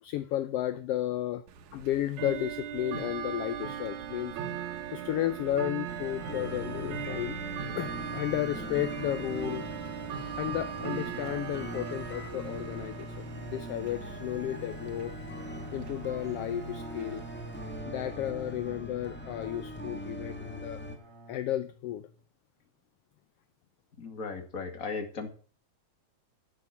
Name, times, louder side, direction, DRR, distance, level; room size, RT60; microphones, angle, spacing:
voice 1, 0.0-1.4 1.7-4.4 4.9-7.4 7.7-9.7 10.4-15.1 15.7-17.2 17.9-20.8 21.3-22.1, left 13 dB, 75° left, 11 dB, 1.4 m, -33 dB
Bell / Tick-tock, 1.5-17.8, right 8 dB, 85° right, 2.5 m, -39 dB
sound 1, 5.8-21.0, left 1 dB, 5° left, 0.9 m, -42 dB
Bowed string instrument, 13.7-22.2, right 1 dB, 55° right, 3.8 m, -50 dB
voice 2, 24.0-25.3, left 4 dB, 30° left, 5 dB, 2.3 m, -36 dB
12.0 x 6.1 x 8.3 m, 0.40 s
omnidirectional pair, 3.3 m